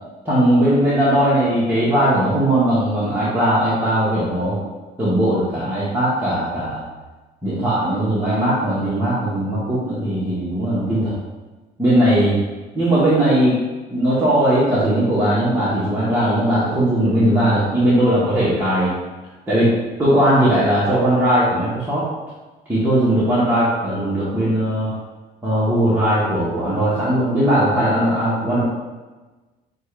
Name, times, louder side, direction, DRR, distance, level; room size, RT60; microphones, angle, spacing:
voice 1, 0.2-4.6 5.0-6.8 7.4-11.1 11.8-12.4 12.7-13.6 13.9-18.9 19.5-19.7 20.0-22.0 22.7-24.9 25.4-28.6, right 1 dB, 10° right, -11 dB, 1.3 m, -18 dB
6.5 x 2.5 x 3.3 m, 1.2 s
cardioid pair, 110°, 17 cm